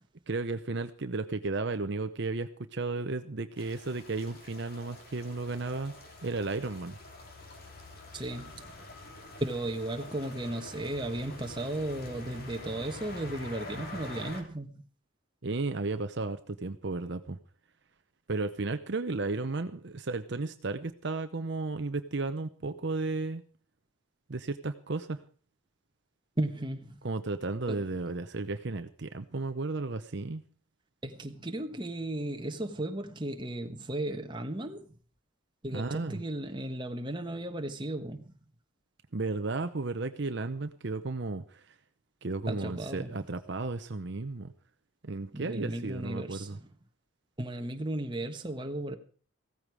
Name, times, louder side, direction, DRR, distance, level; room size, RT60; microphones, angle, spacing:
voice 1, 0.3-5.9 6.2-7.0 15.4-17.4 18.3-23.4 24.3-25.2 27.0-30.4 35.7-36.2 39.1-41.7 42.2-44.5 45.0-46.6, right 3 dB, 55° right, 0.8 m, -34 dB
sound 1, 3.6-14.4, left 2 dB, 45° left, 3.1 m, -46 dB
voice 2, 8.1-8.7 9.4-14.8 26.4-27.0 27.7-27.8 31.0-34.9 35.6-38.2 42.5-43.1 45.3-46.6 47.4-49.0, right 1 dB, 20° right, 1.4 m, -35 dB
16.0 x 14.5 x 4.8 m
head